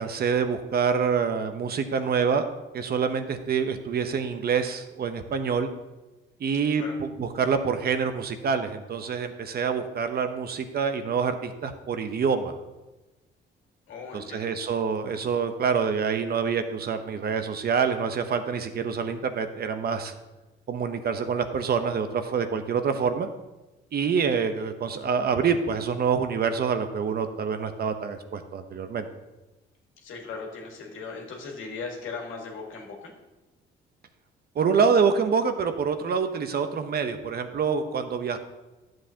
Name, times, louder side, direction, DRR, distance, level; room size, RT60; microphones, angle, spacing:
voice 1, 0.0-2.4 2.7-5.7 6.4-12.5 14.1-20.1 20.7-23.3 23.9-29.1 34.6-38.4, right 6 dB, 50° right, 8 dB, 0.8 m, -26 dB
voice 2, 13.9-14.5 30.0-33.1, left 4 dB, 80° left, 0 dB, 1.9 m, -38 dB
11.5 x 7.7 x 2.8 m, 1.1 s
cardioid pair, 90°, 20 cm